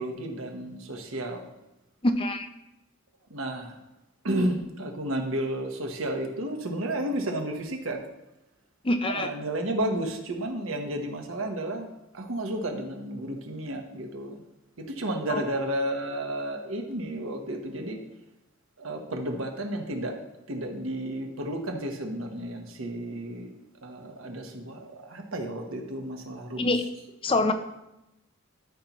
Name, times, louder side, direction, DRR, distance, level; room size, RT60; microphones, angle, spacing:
voice 1, 0.0-1.5 3.3-3.7 4.2-8.0 9.0-11.9 12.1-14.4 14.9-18.0 18.8-20.2 20.5-23.5 23.8-26.7, right 1 dB, 85° right, 3 dB, 1.1 m, -32 dB
voice 2, 2.0-2.5 8.8-9.3 15.3-15.4 26.6-26.8 27.2-27.5, left 2 dB, 25° left, 7 dB, 0.5 m, -25 dB
13.0 x 5.7 x 3.0 m, 0.91 s
head